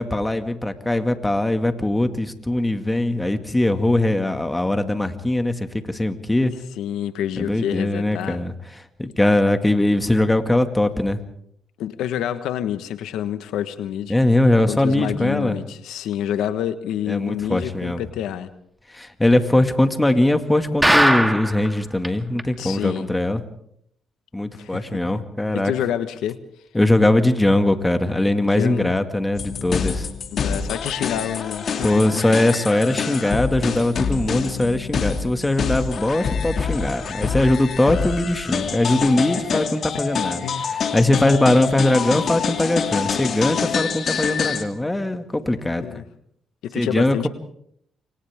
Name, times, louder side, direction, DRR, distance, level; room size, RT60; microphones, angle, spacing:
voice 1, 0.0-6.5 7.4-11.2 14.1-15.6 17.1-18.0 18.9-23.4 24.3-25.7 26.7-30.1 31.8-45.9 46.7-47.2, left 1 dB, 10° left, 7 dB, 2.2 m, -21 dB
voice 2, 6.8-8.4 11.8-14.2 14.7-18.5 19.5-19.6 22.6-23.1 24.5-24.8 25.5-26.4 28.5-29.0 30.3-32.4 39.3-39.6 40.4-40.8 45.8-46.0 46.6-47.3, left 10 dB, 85° left, 11 dB, 1.4 m, -28 dB
sound 1, 20.8-21.7 22.0-22.1 22.4-22.5 23.0-23.1, right 1 dB, 5° right, 2.6 m, -17 dB
sound 2, 29.3-44.6, left 6 dB, 55° left, 2.7 m, -26 dB
29.0 x 26.0 x 3.7 m, 0.69 s
cardioid pair, 90°, 0 cm